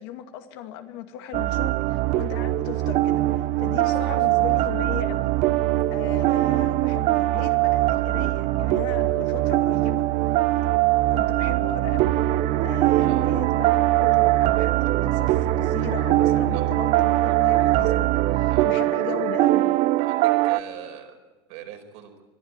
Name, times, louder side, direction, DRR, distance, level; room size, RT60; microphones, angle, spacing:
voice 1, 0.0-5.3 5.9-10.1 11.1-12.2 12.6-19.7, left 10 dB, 70° left, 6 dB, 2.3 m, -37 dB
sound 1, 1.3-20.6, right 16 dB, 55° right, 0.8 m, -22 dB
voice 2, 13.0-13.3 16.5-16.7 18.5-18.7 20.0-21.1 21.5-22.1, right 10 dB, 70° right, 4 dB, 5.0 m, -41 dB
21.5 x 12.5 x 9.8 m, 1.2 s
supercardioid pair, 100°, 14 cm